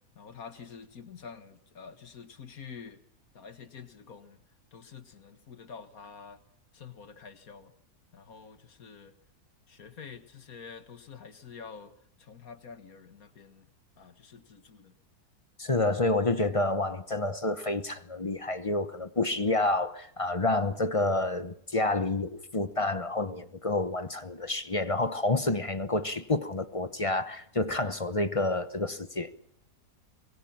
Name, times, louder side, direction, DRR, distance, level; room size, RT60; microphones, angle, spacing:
voice 1, 0.2-3.0 3.3-4.4 4.7-6.4 6.7-7.7 8.1-9.1 9.7-11.9 12.2-13.7 14.0-14.9, left 6 dB, 60° left, 2.0 m, -47 dB
voice 2, 15.6-29.3, left 2 dB, 25° left, 0.7 m, -29 dB
25.5 x 22.0 x 5.8 m
omnidirectional pair, 1.7 m